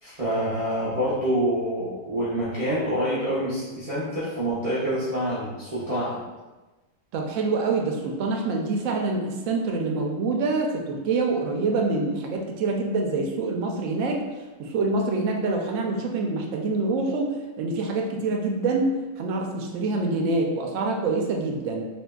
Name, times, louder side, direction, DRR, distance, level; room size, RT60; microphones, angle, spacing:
voice 1, 0.0-6.2, equal, 40° right, -11 dB, 0.6 m, -26 dB
voice 2, 7.1-14.2 14.6-21.9, right 3 dB, 70° right, 1 dB, 0.9 m, -26 dB
3.4 x 2.7 x 2.2 m, 1.2 s
omnidirectional pair, 1.5 m